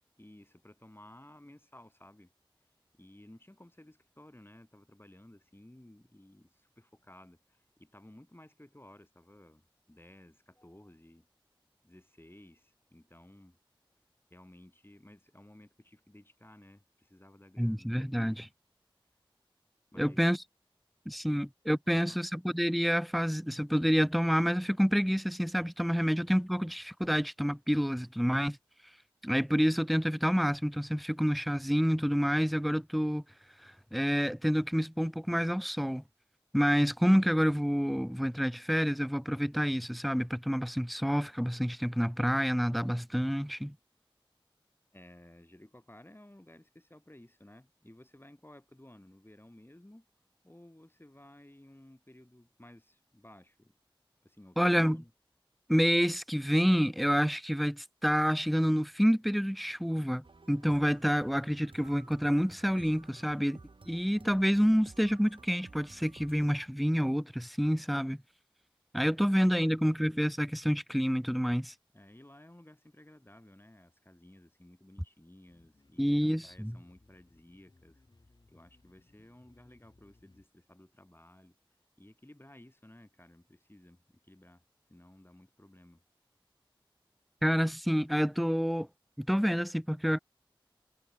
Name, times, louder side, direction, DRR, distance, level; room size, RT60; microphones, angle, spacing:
voice 1, 0.2-2.3 2.9-11.3 11.8-13.6 14.3-18.4 19.9-20.2 21.3-21.5 21.9-22.2 44.9-50.1 50.4-53.7 54.2-55.1 69.1-69.8 71.9-78.0 78.5-81.6 82.0-84.6 84.9-86.0, left 1 dB, 25° left, 6.2 m, -56 dB
voice 2, 17.6-18.5 20.0-20.4 21.1-28.6 29.2-33.2 33.6-36.0 36.5-43.7 54.6-55.0 55.7-63.6 63.9-68.2 68.9-71.7 76.0-76.8 87.4-88.9 89.2-90.2, equal, ahead, 0.3 m, -28 dB
sound 1, 60.2-66.5, right 3 dB, 70° right, 1.0 m, -54 dB
sound 2, 75.5-80.5, left 2 dB, 55° left, 1.7 m, -64 dB
wide cardioid pair, 40°, 9 cm